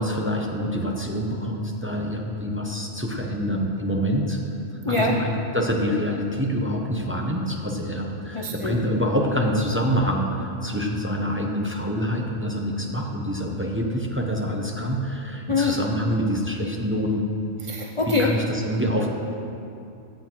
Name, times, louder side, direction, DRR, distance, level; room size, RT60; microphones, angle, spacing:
voice 1, 0.0-4.4 4.9-17.3 18.1-19.1, equal, 10° right, 0 dB, 0.8 m, -26 dB
voice 2, 4.8-5.2 8.3-8.8 15.5-15.8 17.6-18.3, left 4 dB, 35° left, 1 dB, 0.6 m, -24 dB
15.5 x 8.2 x 4.6 m, 2.6 s
omnidirectional pair, 1.3 m